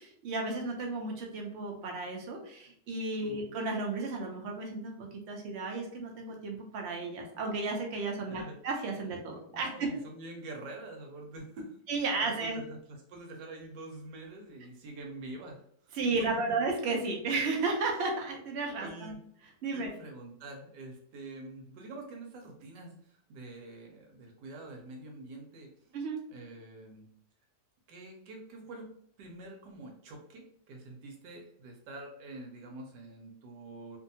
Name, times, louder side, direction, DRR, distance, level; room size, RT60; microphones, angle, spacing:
voice 1, 0.0-9.9 11.9-12.6 15.9-19.1 19.6-19.9 25.9-26.2, right 3 dB, 70° right, 1 dB, 0.6 m, -33 dB
voice 2, 8.2-8.6 9.5-12.0 12.4-16.6 18.8-19.2 19.7-26.0 26.3-27.1 27.9-28.9 29.2-34.0, right 2 dB, 90° right, 1 dB, 1.2 m, -46 dB
2.6 x 2.6 x 2.6 m, 0.68 s
omnidirectional pair, 1.8 m